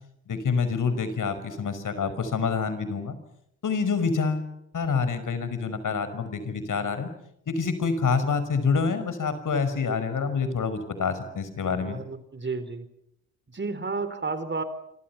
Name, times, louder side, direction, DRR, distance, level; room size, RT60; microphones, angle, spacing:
voice 1, 0.3-3.2 3.6-4.5 4.7-7.1 7.5-12.0, left 5 dB, 45° left, 12 dB, 5.6 m, -27 dB
voice 2, 11.6-12.9 13.5-14.6, right 4 dB, 25° right, 12 dB, 4.1 m, -32 dB
28.0 x 26.0 x 6.0 m, 0.74 s
hypercardioid pair, 55°, 42 cm